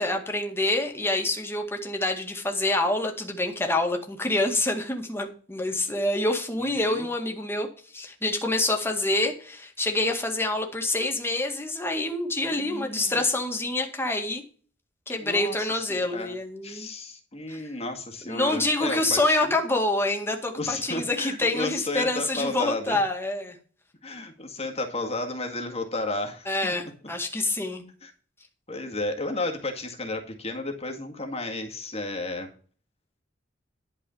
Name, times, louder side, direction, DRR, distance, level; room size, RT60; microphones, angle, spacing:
voice 1, 0.0-7.7 7.9-14.4 15.1-16.9 17.5-17.6 18.3-23.6 26.5-27.8, left 2 dB, 15° left, 3 dB, 2.0 m, -26 dB
voice 2, 6.6-7.1 12.4-13.2 15.2-16.3 16.6-19.5 20.6-23.0 24.0-26.7 28.0-28.1 28.7-32.5, left 2 dB, 35° left, 4 dB, 1.9 m, -33 dB
11.5 x 4.8 x 7.1 m, 0.41 s
head